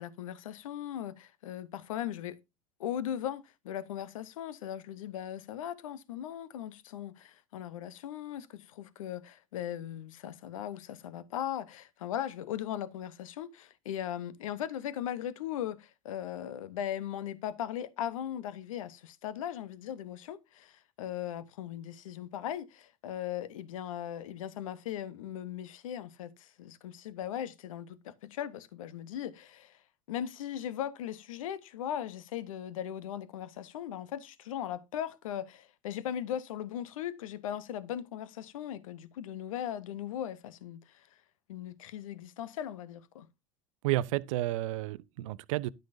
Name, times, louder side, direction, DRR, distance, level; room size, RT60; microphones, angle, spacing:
voice 1, 0.0-2.4 2.8-29.8 30.1-41.1 41.5-43.3, left 10 dB, 75° left, 0.9 m, -38 dB
voice 2, 43.8-45.7, right 16 dB, 70° right, 0.6 m, -31 dB
11.0 x 9.3 x 2.6 m
figure-of-eight pair, 70°, 18 cm